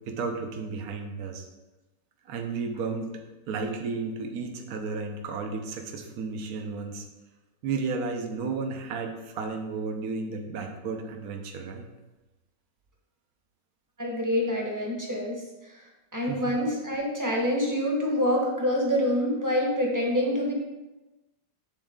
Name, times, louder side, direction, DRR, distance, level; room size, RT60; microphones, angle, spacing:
voice 1, 0.1-1.5 2.3-7.1 7.6-11.9 16.3-16.4, right 4 dB, 60° right, 4 dB, 1.2 m, -33 dB
voice 2, 14.0-15.8 16.1-20.5, equal, 15° right, -2 dB, 1.0 m, -26 dB
8.9 x 4.1 x 3.6 m, 1.1 s
omnidirectional pair, 1.9 m